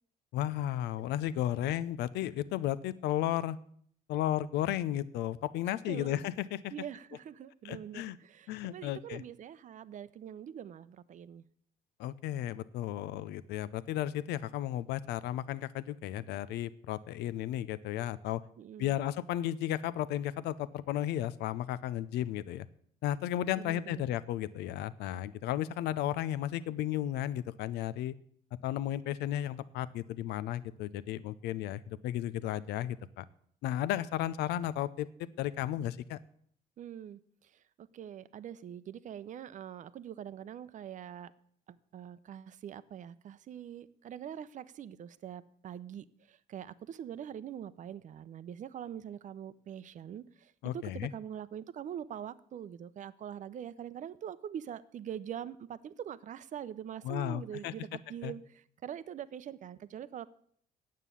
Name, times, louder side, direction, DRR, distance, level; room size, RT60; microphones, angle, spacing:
voice 1, 0.3-3.6 4.1-6.7 7.6-8.2 8.5-9.2 12.0-18.4 18.8-22.7 23.0-28.1 28.6-33.2 33.6-36.2 50.6-51.1 57.0-57.7 58.2-58.3, left 12 dB, 85° left, 16 dB, 0.6 m, -34 dB
voice 2, 5.9-6.2 6.7-11.4 18.6-19.0 23.6-24.1 36.8-37.5 37.8-41.3 41.7-60.3, right 9 dB, 50° right, 15 dB, 0.7 m, -44 dB
9.2 x 7.5 x 8.2 m, 0.62 s
cardioid pair, 110°, 17 cm